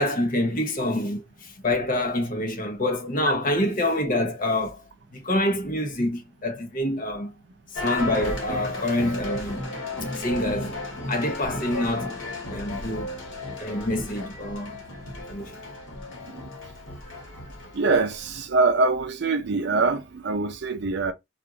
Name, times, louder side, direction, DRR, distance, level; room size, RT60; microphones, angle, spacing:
voice 1, 0.0-4.8 5.1-7.3 7.7-9.6 10.1-10.8 11.1-12.2 12.5-13.1 13.6-14.8 15.3-15.6, left 1 dB, 45° left, 0.8 m, -26 dB
sound 1, 7.8-18.4, left 1 dB, 70° left, 1.4 m, -34 dB
voice 2, 16.1-16.4 17.7-21.1, right 3 dB, 55° right, 0.5 m, -24 dB
2.4 x 2.4 x 2.9 m
head